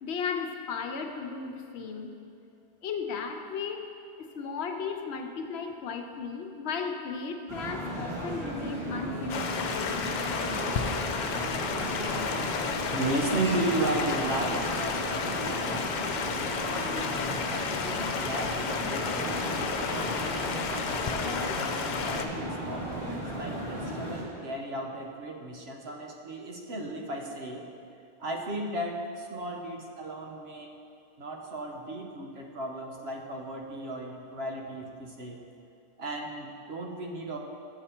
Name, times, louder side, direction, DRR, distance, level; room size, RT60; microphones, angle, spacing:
voice 1, 0.0-2.1 2.8-3.8 4.2-10.0, left 5 dB, 80° left, 5 dB, 0.9 m, -35 dB
sound 1, 7.5-24.2, equal, 25° right, 1.9 m, -35 dB
Stream, 9.3-22.2, left 5 dB, 55° left, 0.5 m, -32 dB
voice 2, 12.9-17.0 17.5-20.2 20.7-27.7 28.2-30.8 31.2-35.4 36.0-37.4, right 2 dB, 75° right, 1 dB, 1.1 m, -35 dB
7.1 x 6.8 x 4.4 m, 2.6 s
omnidirectional pair, 1.1 m